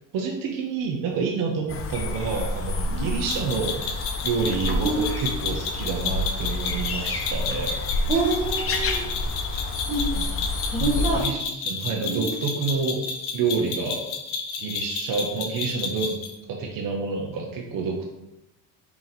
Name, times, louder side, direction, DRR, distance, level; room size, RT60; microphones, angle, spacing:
voice 1, 0.1-3.8 4.2-7.8 10.8-13.0 13.3-14.0 14.6-16.2 16.5-18.1, right 5 dB, 55° right, 0 dB, 0.7 m, -28 dB
sound 1, 1.7-11.3, left 2 dB, 35° left, 0.6 m, -29 dB
sound 2, 3.3-16.3, left 5 dB, 70° left, 0.8 m, -31 dB
voice 2, 4.7-5.4 8.1-9.0 9.9-10.2 10.7-11.2 12.0-12.4, right 3 dB, 15° right, -6 dB, 1.1 m, -27 dB
3.8 x 2.9 x 4.1 m, 0.91 s
supercardioid pair, 85°, 40 cm